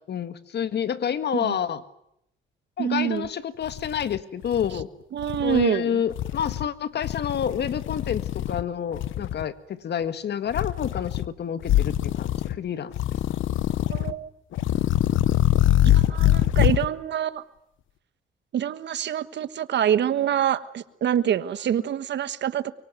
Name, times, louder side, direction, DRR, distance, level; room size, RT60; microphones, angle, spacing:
voice 1, 0.1-1.8 2.8-4.9 5.4-12.9, left 8 dB, 60° left, 12 dB, 1.8 m, -28 dB
voice 2, 2.8-3.3 5.1-6.0 13.9-14.3 15.9-17.4 18.5-22.7, right 9 dB, 65° right, 14 dB, 1.4 m, -26 dB
sound 1, 3.2-3.3 3.7-4.8 5.2-5.6 6.1-6.7 7.0-8.6 8.9-9.4 10.5-11.3 11.6-12.6 12.9-14.1 14.5-16.9, left 13 dB, 75° left, 1.0 m, -24 dB
24.0 x 23.5 x 9.4 m, 0.76 s
cardioid pair, 90°, 20 cm